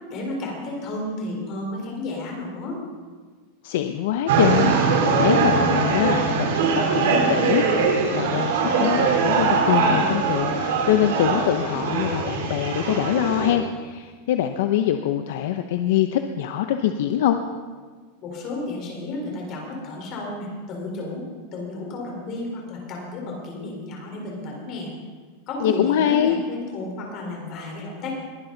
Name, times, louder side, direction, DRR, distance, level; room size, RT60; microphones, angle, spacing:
voice 1, 0.1-2.8 18.2-21.2 21.5-24.9 25.5-28.2, left 2 dB, 30° left, -1 dB, 4.2 m, -32 dB
voice 2, 3.6-17.4 25.6-26.4, left 10 dB, 60° left, 7 dB, 0.7 m, -24 dB
sound 1, 4.3-13.5, right 4 dB, 80° right, 3.5 m, -21 dB
21.5 x 11.5 x 4.0 m, 1.5 s
supercardioid pair, 175°, 0 cm